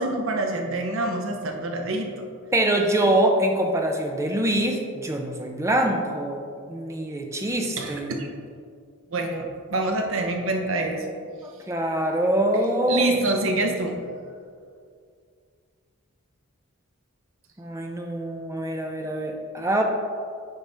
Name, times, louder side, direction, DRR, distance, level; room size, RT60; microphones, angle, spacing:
voice 1, 0.0-2.1 7.8-8.3 9.1-11.1 12.9-14.0, right 2 dB, 65° right, 3 dB, 0.8 m, -26 dB
voice 2, 2.5-6.4 6.7-8.1 11.7-13.1 17.6-19.8, right 1 dB, 15° right, 2 dB, 0.6 m, -24 dB
9.3 x 4.1 x 3.4 m, 2.2 s
head